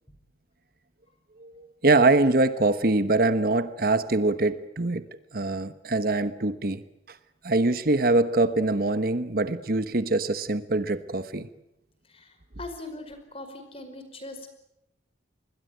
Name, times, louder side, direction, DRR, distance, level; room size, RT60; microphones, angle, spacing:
voice 1, 1.4-5.0 5.3-7.2 7.4-11.5, right 2 dB, 55° right, 12 dB, 1.2 m, -24 dB
voice 2, 12.1-14.5, left 2 dB, 30° left, 8 dB, 5.2 m, -41 dB
26.5 x 21.0 x 9.4 m, 0.84 s
head